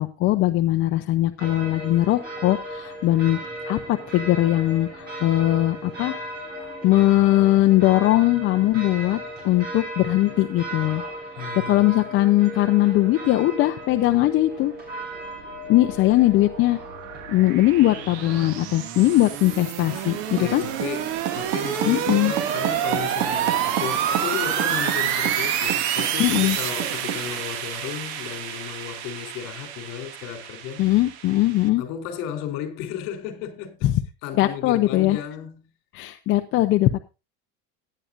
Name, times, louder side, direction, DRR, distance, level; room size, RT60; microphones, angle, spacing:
voice 1, 0.0-3.4 3.7-6.2 6.8-11.0 11.6-14.7 15.7-16.8 17.3-20.6 21.9-22.3 26.2-26.6 30.8-31.8 34.4-35.2 35.9-37.0, left 16 dB, 40° left, 0.7 m, -20 dB
sound 1, 1.4-18.6, right 1 dB, 30° right, 7.8 m, -36 dB
voice 2, 11.4-11.9 20.4-30.8 31.8-33.9 34.2-35.6, left 9 dB, 60° left, 3.8 m, -34 dB
sound 2, 15.6-31.7, right 9 dB, 80° right, 2.2 m, -29 dB
sound 3, 19.8-27.4, right 11 dB, 65° right, 1.7 m, -32 dB
17.5 x 10.0 x 2.5 m
cardioid pair, 165°, 31 cm